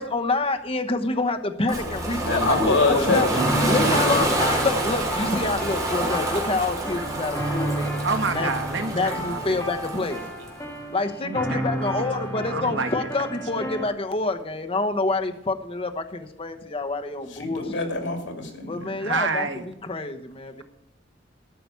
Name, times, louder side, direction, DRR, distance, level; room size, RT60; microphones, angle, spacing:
voice 1, 0.0-3.3 3.7-8.0 8.3-8.5 8.9-10.2 10.9-17.9 18.7-20.6, left 3 dB, 30° left, 5 dB, 1.0 m, -27 dB
Ocean, 1.7-10.5, right 2 dB, 20° right, 2.9 m, -27 dB
voice 2, 2.2-4.1 17.4-18.9, left 3 dB, 85° left, 4 dB, 2.7 m, -25 dB
sound 1, 3.3-13.9, right 1 dB, 15° left, 2.0 m, -32 dB
voice 3, 8.0-9.6 11.2-11.9 12.5-13.1 13.5-13.7 19.0-19.7, right 4 dB, 75° right, 7 dB, 1.4 m, -29 dB
12.5 x 5.9 x 8.1 m, 0.84 s
head